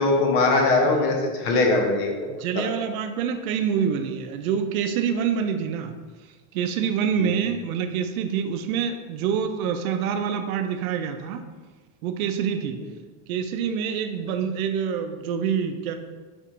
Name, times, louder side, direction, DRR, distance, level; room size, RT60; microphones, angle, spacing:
voice 1, 0.0-2.3 2.6-2.7 7.2-7.3, left 3 dB, 45° left, 1 dB, 0.8 m, -21 dB
voice 2, 2.3-6.0 6.5-11.4 12.0-12.8 13.3-15.9, right 7 dB, 80° right, 7 dB, 0.5 m, -26 dB
4.4 x 4.3 x 2.4 m, 1.3 s
supercardioid pair, 180°, 42 cm